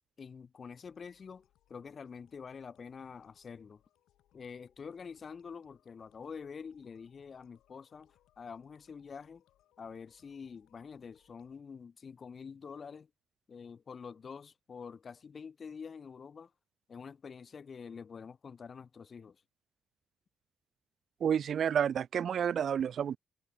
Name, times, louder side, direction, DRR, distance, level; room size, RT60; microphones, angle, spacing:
voice 1, 0.2-3.8 4.3-9.4 9.8-13.1 13.5-16.5 16.9-19.4, left 6 dB, 45° left, 1.4 m, -47 dB
sound 1, 0.7-11.6, left 13 dB, 85° left, 6.4 m, -72 dB
voice 2, 21.2-23.2, right 8 dB, 60° right, 0.3 m, -30 dB
cardioid pair, 90°, 0 cm